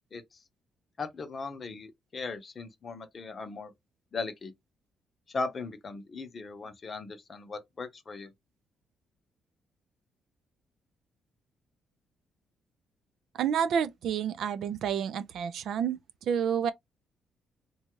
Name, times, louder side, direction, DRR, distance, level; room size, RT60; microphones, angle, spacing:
voice 1, 1.0-3.7 4.1-4.5 5.3-8.3, left 3 dB, 40° left, 0.7 m, -38 dB
voice 2, 13.4-16.7, right 8 dB, 75° right, 0.4 m, -29 dB
2.8 x 2.3 x 2.9 m
cardioid pair, 90°, 0 cm